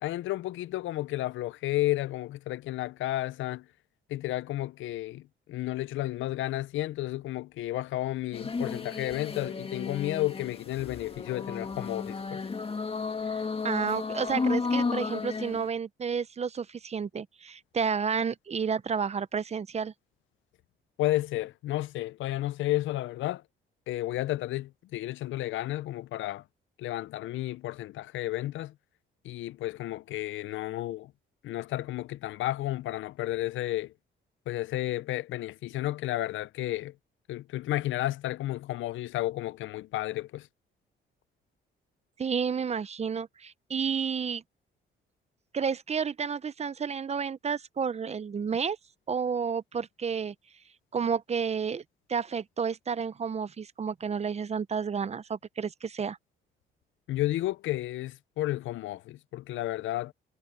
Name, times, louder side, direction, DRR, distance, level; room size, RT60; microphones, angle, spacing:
voice 1, 0.0-3.7 4.1-12.4 21.0-23.4 23.9-26.4 26.8-28.7 29.2-31.1 31.4-33.9 34.5-36.9 37.3-40.5 57.1-60.1, left 15 dB, 75° left, 0.5 m, -32 dB
sound 1, 8.3-15.7, left 4 dB, 30° left, 1.9 m, -33 dB
voice 2, 13.2-19.9 42.2-44.4 45.5-48.8 49.1-50.3 50.9-51.8 52.1-56.2, right 6 dB, 35° right, 0.7 m, -31 dB
cardioid pair, 90°, 20 cm